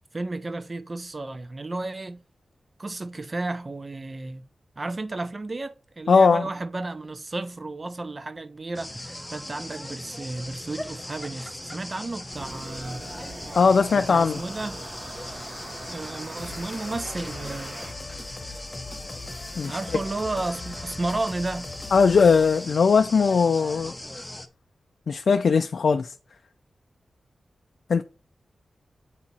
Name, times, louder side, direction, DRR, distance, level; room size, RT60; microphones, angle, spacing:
voice 1, 0.1-2.2 2.8-4.4 4.8-13.0 13.9-14.8 15.9-17.8 18.3-18.5 19.7-21.8, right 2 dB, 35° right, 0.6 m, -33 dB
voice 2, 6.1-6.5 13.5-14.4 19.6-19.8 21.9-23.9 25.1-26.1 27.9-28.0, left 5 dB, 70° left, 0.4 m, -19 dB
sound 1, 8.7-24.5, left 1 dB, 10° left, 0.7 m, -39 dB
sound 2, 12.3-17.9, right 2 dB, 70° right, 2.0 m, -41 dB
sound 3, 16.4-22.7, left 3 dB, 40° left, 1.0 m, -41 dB
8.2 x 2.8 x 4.1 m
wide cardioid pair, 85°, 0 cm